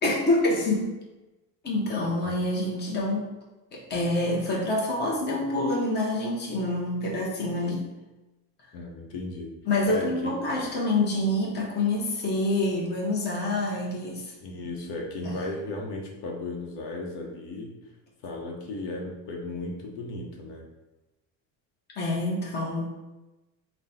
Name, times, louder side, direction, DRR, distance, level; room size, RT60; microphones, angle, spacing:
voice 1, 0.0-0.9 1.6-3.3 3.7-7.8 9.7-14.3 15.2-15.3 22.0-22.9, left 2 dB, 25° left, -3 dB, 0.7 m, -26 dB
voice 2, 8.7-9.5 9.9-10.6 14.4-17.7 18.2-20.7, left 2 dB, 85° left, 0 dB, 0.8 m, -35 dB
3.9 x 2.2 x 4.1 m, 1.1 s
cardioid pair, 160°, 41 cm